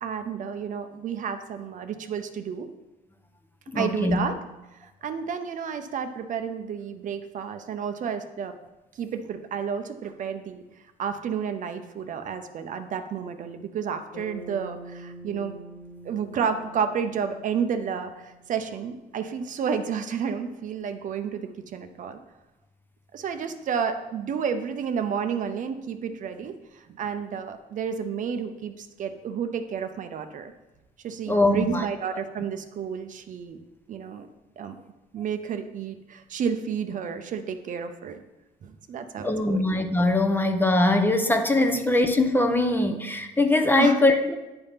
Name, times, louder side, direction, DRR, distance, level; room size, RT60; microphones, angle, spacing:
voice 1, 0.0-2.7 3.7-4.4 4.7-8.5 8.9-10.6 11.0-15.5 16.0-22.2 23.1-30.5 31.0-33.6 33.9-34.3 34.6-34.8 35.1-38.2 38.6-39.6 41.7-41.8 43.8-44.0, right 7 dB, 50° right, 8 dB, 0.6 m, -31 dB
voice 2, 3.7-4.2 31.3-31.8 39.2-44.3, left 2 dB, 10° left, 6 dB, 0.6 m, -22 dB
Bass guitar, 14.1-18.6, right 1 dB, 80° left, 1.5 m, -45 dB
9.7 x 3.5 x 5.7 m, 1.0 s
cardioid pair, 110°, 17 cm